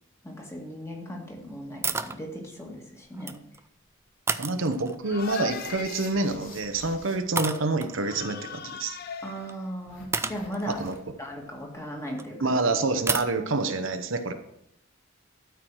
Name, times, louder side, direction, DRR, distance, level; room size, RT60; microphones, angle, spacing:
voice 1, 0.2-3.4 9.2-10.8 11.2-12.5, equal, 15° left, 0 dB, 1.8 m, -37 dB
sound 1, 1.8-2.2 3.1-3.6 4.3-5.2 6.4-6.7 7.4-8.0 9.5-9.6 10.1-12.2 13.1-13.3, right 4 dB, 15° right, 0.4 m, -31 dB
voice 2, 4.4-9.0 10.7-10.9 12.4-14.3, right 3 dB, 70° right, 8 dB, 0.9 m, -27 dB
sound 2, 5.0-6.5 8.0-9.8, left 6 dB, 50° left, 0.6 m, -39 dB
sound 3, 5.2-7.2 9.9-11.2, left 3 dB, 80° left, 3.0 m, -48 dB
12.5 x 4.7 x 6.2 m, 0.76 s
head